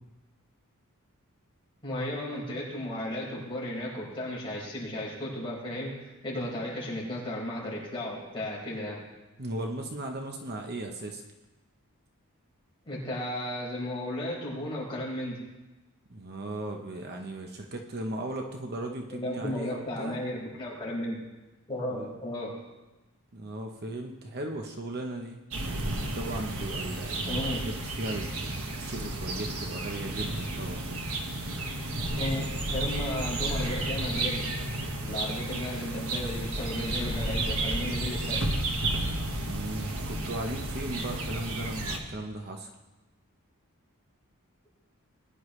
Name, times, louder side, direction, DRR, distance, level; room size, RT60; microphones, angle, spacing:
voice 1, 1.8-5.9 6.2-9.0 12.8-15.4 19.1-21.2 21.7-22.5 27.2-27.6 32.2-34.4 35.0-38.4, left 1 dB, 25° left, -5 dB, 4.9 m, -34 dB
voice 2, 9.4-11.2 16.1-20.2 21.9-22.1 23.3-25.4 26.1-27.6 28.0-30.9 32.3-32.4 39.4-42.7, right 1 dB, 50° right, 3 dB, 1.0 m, -37 dB
sound 1, 25.5-42.0, right 1 dB, 70° right, 1.5 m, -32 dB
20.5 x 10.0 x 3.3 m, 1.1 s
head